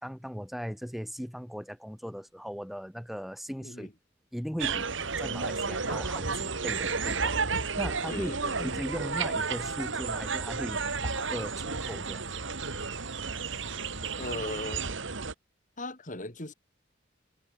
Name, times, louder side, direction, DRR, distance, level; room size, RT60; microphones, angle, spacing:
voice 1, 0.0-3.9 4.3-8.3 8.6-12.3, equal, ahead, 2.2 m, -38 dB
sound 1, 4.6-15.3, right 4 dB, 75° right, 2.1 m, -32 dB
voice 2, 8.1-8.7 14.2-14.8 15.8-16.5, left 1 dB, 40° left, 3.5 m, -38 dB
head